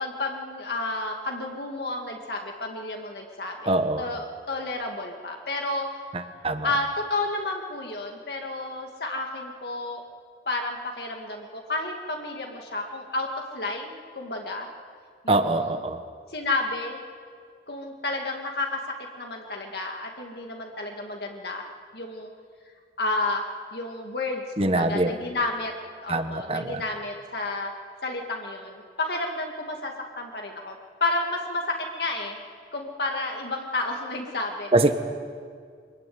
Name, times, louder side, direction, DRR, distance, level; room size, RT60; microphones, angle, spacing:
voice 1, 0.0-5.9 6.6-10.0 10.5-13.3 13.5-14.7 15.2-15.8 16.3-17.0 17.7-22.3 23.0-23.4 23.7-25.7 26.0-27.7 28.0-30.7 31.0-32.4 32.7-34.7, left 2 dB, 60° left, 2 dB, 2.2 m, -31 dB
voice 2, 3.7-4.0 6.4-6.7 15.3-16.0 24.6-25.1 26.1-26.8 34.7-34.9, right 2 dB, 30° right, 9 dB, 1.3 m, -23 dB
24.5 x 21.5 x 9.5 m, 2.1 s
head